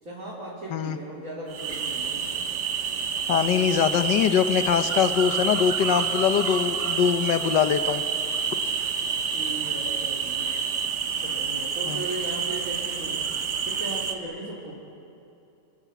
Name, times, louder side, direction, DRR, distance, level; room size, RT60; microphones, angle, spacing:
voice 1, 0.0-2.4 8.6-8.9 9.2-10.8 11.2-14.8, right 2 dB, 50° right, -6 dB, 4.2 m, -38 dB
sound 1, 1.5-14.1, right 6 dB, 75° right, 2.1 m, -28 dB
voice 2, 3.3-8.0 11.9-12.0, left 8 dB, 85° left, 9 dB, 1.6 m, -23 dB
30.0 x 21.0 x 8.3 m, 2.8 s
omnidirectional pair, 1.8 m